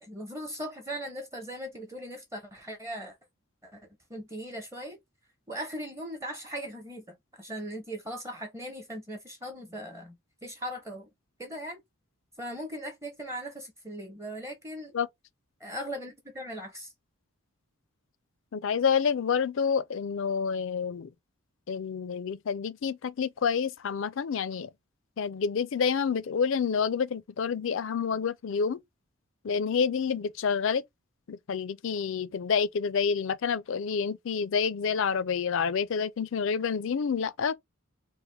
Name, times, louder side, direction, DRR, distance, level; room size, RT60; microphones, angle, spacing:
voice 1, 0.0-3.2 3.6-3.8 4.1-5.0 5.5-10.2 10.4-11.1 11.4-11.8 12.4-14.9 15.6-16.9, equal, 15° right, 0.7 m, -39 dB
voice 2, 18.5-21.1 21.7-24.7 25.2-28.8 29.4-30.8 31.3-37.5, left 6 dB, 60° left, 0.4 m, -28 dB
4.6 x 2.1 x 3.3 m
head